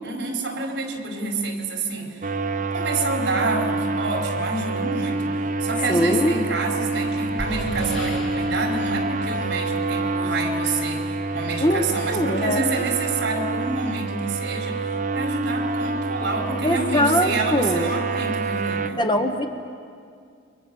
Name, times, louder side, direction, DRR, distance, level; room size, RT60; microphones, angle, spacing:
voice 1, 0.0-2.3 2.7-14.9 15.1-19.0, right 3 dB, 60° right, 1 dB, 4.7 m, -28 dB
sound 1, 2.2-18.9, right 3 dB, 40° right, 0.7 m, -27 dB
voice 2, 5.9-6.4 11.6-11.8 12.1-12.6 16.6-17.9 19.0-19.5, left 1 dB, 25° left, 5 dB, 1.2 m, -21 dB
sound 2, 7.1-10.2, left 1 dB, 75° left, 3.3 m, -37 dB
29.5 x 24.5 x 7.1 m, 2.3 s
head